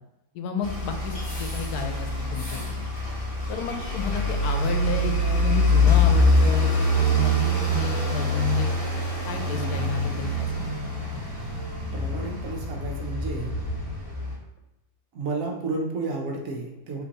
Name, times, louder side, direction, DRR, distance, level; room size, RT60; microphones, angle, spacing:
voice 1, 0.3-2.6 3.5-8.7 9.2-10.7, left 4 dB, 80° left, 5 dB, 1.1 m, -31 dB
sound 1, 0.6-14.3, left 1 dB, 40° left, 1.3 m, -25 dB
sound 2, 4.6-14.0, left 1 dB, 50° right, 1.4 m, -39 dB
voice 2, 11.9-13.6 15.1-17.0, right 3 dB, 65° right, 0 dB, 1.1 m, -31 dB
5.3 x 3.0 x 2.9 m, 0.93 s
omnidirectional pair, 1.6 m